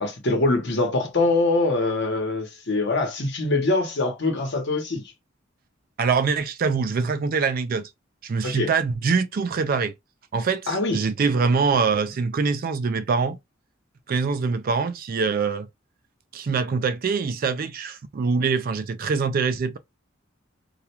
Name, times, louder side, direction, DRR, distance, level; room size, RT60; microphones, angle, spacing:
voice 1, 0.0-5.0 8.4-8.7 10.7-11.0, left 2 dB, 60° left, 1.0 m, -23 dB
voice 2, 6.0-7.9 8.2-9.9 10.3-13.4 14.1-15.7 16.3-19.8, right 5 dB, 45° right, 0.4 m, -24 dB
2.3 x 2.2 x 2.9 m
head